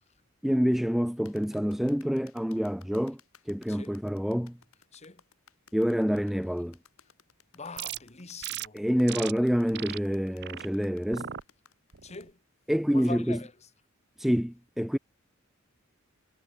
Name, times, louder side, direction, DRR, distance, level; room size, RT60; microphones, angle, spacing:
voice 1, 0.4-3.2 3.5-4.6 5.7-6.8 8.7-11.3 12.7-13.4 14.2-15.0, equal, ahead, 0.4 m, -27 dB
sound 1, 1.3-12.3, left 7 dB, 85° left, 7.2 m, -59 dB
voice 2, 7.5-8.8 12.0-12.4 12.9-13.5, left 4 dB, 30° left, 1.9 m, -42 dB
sound 2, 7.8-8.0 8.4-8.7 9.1-9.3 9.7-10.0 10.4-10.7 11.1-11.4 11.9-12.3, right 11 dB, 55° right, 0.9 m, -37 dB
head